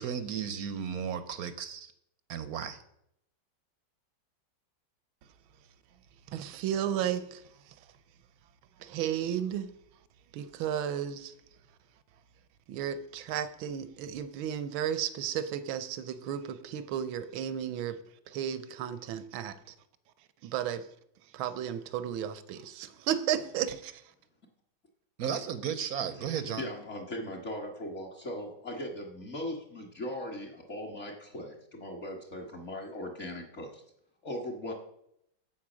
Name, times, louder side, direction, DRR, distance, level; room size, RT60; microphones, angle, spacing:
voice 1, 0.0-1.9 2.3-2.8 25.2-26.6, right 8 dB, 65° right, 0.9 m, -34 dB
voice 2, 6.3-7.7 8.8-9.7 10.3-11.3 12.7-18.0 18.3-19.7 20.4-20.9 21.3-24.0, right 9 dB, 90° right, 1.5 m, -33 dB
voice 3, 26.6-33.8 34.2-34.7, left 1 dB, 40° left, 1.6 m, -39 dB
8.6 x 7.9 x 6.2 m
omnidirectional pair, 2.1 m